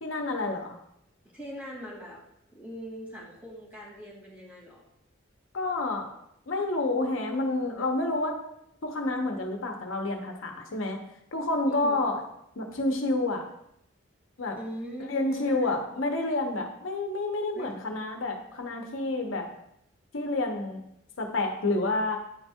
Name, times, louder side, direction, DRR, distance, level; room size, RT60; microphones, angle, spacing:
voice 1, 0.0-0.8 5.5-6.1 6.5-8.4 8.8-11.0 11.3-12.2 12.6-13.4 14.4-14.6 15.1-19.5 20.1-20.8 21.2-22.2, left 2 dB, 80° left, 3 dB, 0.8 m, -29 dB
voice 2, 1.3-2.2 2.5-4.8 11.7-12.2 14.6-15.8 17.5-17.7, equal, 10° right, -5 dB, 2.2 m, -41 dB
9.5 x 4.4 x 2.3 m, 0.78 s
head